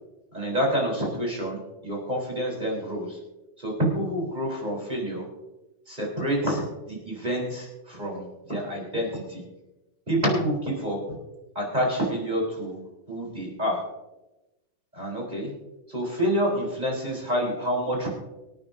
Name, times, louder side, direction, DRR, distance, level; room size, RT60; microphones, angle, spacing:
voice 1, 0.3-3.2 3.6-5.2 5.9-9.4 10.1-11.0 11.5-12.8 13.1-13.8 14.9-15.5 15.9-18.1, equal, 20° right, -3 dB, 4.0 m, -28 dB
25.0 x 9.1 x 2.7 m, 1.0 s
omnidirectional pair, 2.1 m